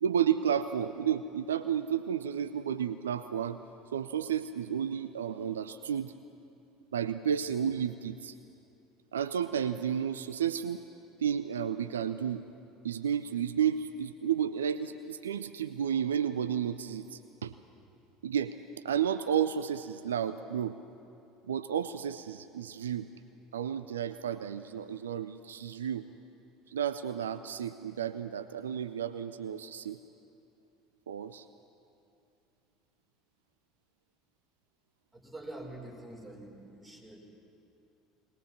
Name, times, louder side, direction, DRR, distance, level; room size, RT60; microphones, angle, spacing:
voice 1, 0.0-3.6 3.9-6.1 6.9-8.4 9.1-10.8 11.2-12.4 12.8-17.5 18.2-18.6 18.8-20.8 21.5-23.1 23.5-26.1 26.7-30.0 31.1-31.5, right 8 dB, 70° right, 11 dB, 0.4 m, -32 dB
voice 2, 35.1-37.2, right 1 dB, 5° right, -3 dB, 5.4 m, -45 dB
20.5 x 20.0 x 7.3 m, 2.7 s
figure-of-eight pair, 65°, 0 cm